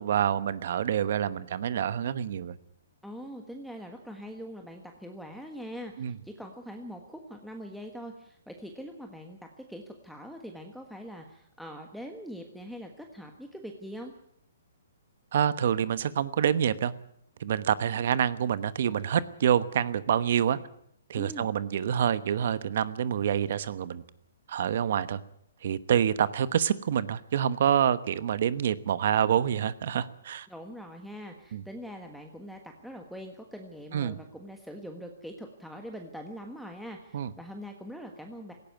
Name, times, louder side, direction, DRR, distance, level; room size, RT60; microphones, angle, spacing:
voice 1, 0.0-2.5 6.0-6.1 15.3-16.9 17.4-20.6 21.1-24.0 24.5-25.2 25.6-30.5 31.5-31.6 33.9-34.2 37.1-37.3, right 9 dB, 55° right, 15 dB, 1.1 m, -27 dB
voice 2, 3.0-14.1 21.1-21.5 30.5-38.5, equal, ahead, 3 dB, 1.4 m, -43 dB
18.0 x 15.5 x 9.3 m, 0.71 s
hypercardioid pair, 155°, 0 cm